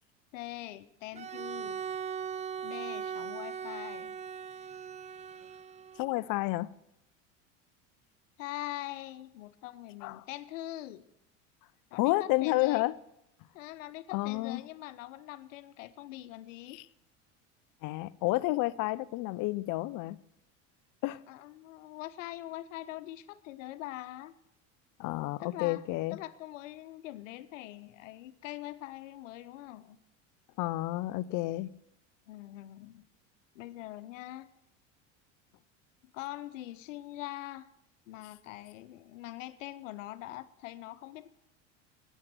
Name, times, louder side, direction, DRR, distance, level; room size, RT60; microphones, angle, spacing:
voice 1, 0.3-1.8 2.6-4.2 8.4-11.0 11.9-12.8 13.5-16.8 21.3-24.3 25.4-25.8 26.1-30.0 32.3-33.1 33.5-34.5 36.1-37.7 38.1-41.3, left 15 dB, 85° left, 1.1 m, -43 dB
Bowed string instrument, 1.1-6.1, right 7 dB, 20° right, 0.5 m, -39 dB
voice 2, 6.0-6.7 10.0-10.2 12.0-12.9 14.1-14.6 16.7-16.8 17.8-20.2 21.0-21.2 25.0-26.2 30.6-31.7, left 19 dB, 55° left, 0.8 m, -30 dB
14.5 x 9.4 x 9.2 m
supercardioid pair, 100°, 37 cm